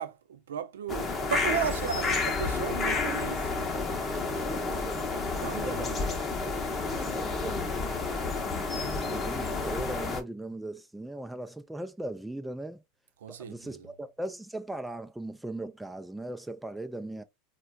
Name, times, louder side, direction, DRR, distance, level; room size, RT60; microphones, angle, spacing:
voice 1, 0.0-3.7 5.4-6.1 13.2-13.9, right 8 dB, 80° right, 0.4 m, -35 dB
sound 1, 0.9-10.2, left 3 dB, 30° left, 0.8 m, -30 dB
voice 2, 4.5-5.1 5.4-6.0 6.9-7.8 8.4-12.8 13.3-17.2, right 1 dB, 5° right, 0.4 m, -39 dB
4.3 x 2.2 x 2.3 m
hypercardioid pair, 90°, 0 cm